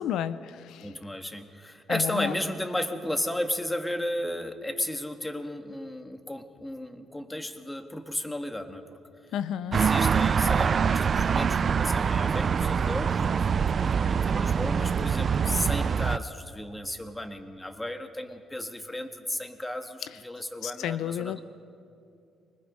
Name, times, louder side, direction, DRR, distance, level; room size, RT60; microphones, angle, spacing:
voice 1, 0.0-0.9 1.9-2.3 9.3-9.8 20.6-21.4, left 10 dB, 85° left, 15 dB, 0.5 m, -31 dB
voice 2, 0.8-8.8 9.7-21.4, left 1 dB, 10° left, 7 dB, 1.6 m, -34 dB
sound 1, 9.7-16.2, right 6 dB, 45° right, 0.4 m, -24 dB
24.0 x 21.0 x 5.2 m, 2.6 s
cardioid pair, 90°, 0 cm